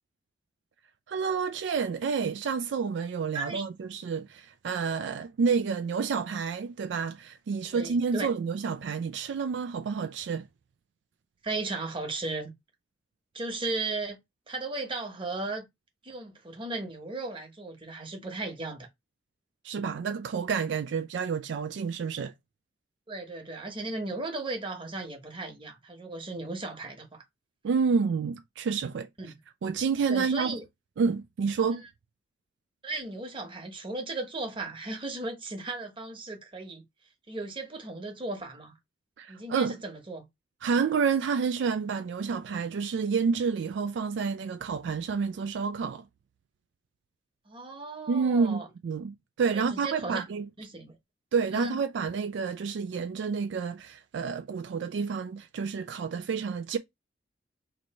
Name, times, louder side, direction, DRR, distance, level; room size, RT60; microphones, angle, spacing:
voice 1, 1.1-10.5 19.6-22.3 27.6-29.1 29.6-30.6 31.0-31.8 39.2-39.8 40.6-46.0 48.1-50.5 51.3-56.8, right 5 dB, 70° right, 0.3 m, -29 dB
voice 2, 3.3-3.6 7.7-8.3 11.4-12.5 13.3-14.2 14.5-15.6 16.0-18.9 23.1-27.2 29.2-29.4 30.1-30.6 31.7-31.8 32.8-36.8 37.3-38.7 39.3-40.3 47.4-48.7 49.5-50.3 50.6-50.9 51.5-51.8, right 2 dB, 30° right, 1.1 m, -36 dB
3.0 x 2.6 x 4.2 m
head